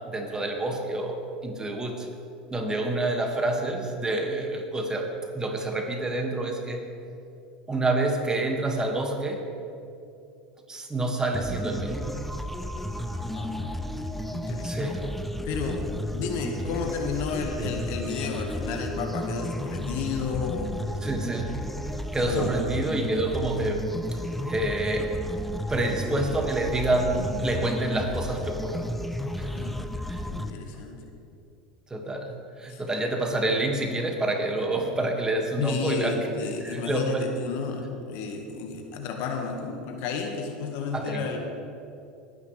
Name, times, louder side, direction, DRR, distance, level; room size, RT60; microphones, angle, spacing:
voice 1, 0.0-2.1 2.5-6.8 7.7-9.4 10.7-12.2 14.6-15.0 17.6-17.7 21.0-21.6 22.1-23.9 24.5-25.1 25.7-28.9 29.4-29.7 30.1-30.2 31.9-36.2 36.6-37.3 40.9-41.3, right 2 dB, 15° right, 2 dB, 1.9 m, -28 dB
sound 1, 11.3-30.5, left 1 dB, 5° left, 0.7 m, -33 dB
voice 2, 13.3-13.7 14.3-14.9 15.4-20.8 22.3-22.5 29.5-29.8 30.3-31.0 32.7-32.8 35.6-41.4, left 5 dB, 60° left, 3 dB, 1.5 m, -32 dB
20.0 x 9.5 x 3.3 m, 2.6 s
hypercardioid pair, 85°, 4 cm